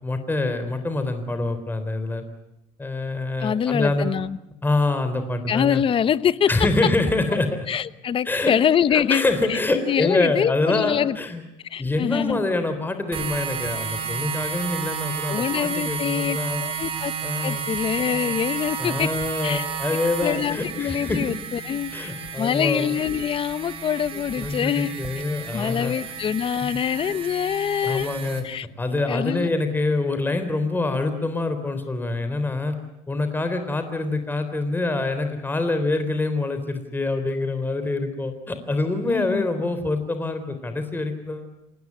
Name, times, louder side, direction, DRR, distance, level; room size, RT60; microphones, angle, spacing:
voice 1, 0.0-2.2 2.8-4.1 4.6-5.8 6.5-7.7 8.2-8.6 8.9-11.4 11.8-16.6 17.2-17.6 18.8-21.2 21.9-22.9 24.1-26.0 26.6-26.8 27.8-28.4 28.8-32.7 33.1-41.5, left 2 dB, 15° left, 8 dB, 3.8 m, -25 dB
voice 2, 3.4-4.4 5.5-6.5 7.7-9.2 9.5-9.6 9.9-11.2 11.7-12.4 15.3-17.1 17.4-19.1 19.4-19.7 20.2-22.1 22.4-24.9 25.5-28.1 28.4-28.7 29.1-29.5 39.1-39.5, left 8 dB, 40° left, 16 dB, 1.0 m, -24 dB
sound 1, 13.1-28.4, right 6 dB, 40° right, 6.0 m, -32 dB
27.0 x 19.0 x 9.7 m, 0.89 s
cardioid pair, 115°, 14 cm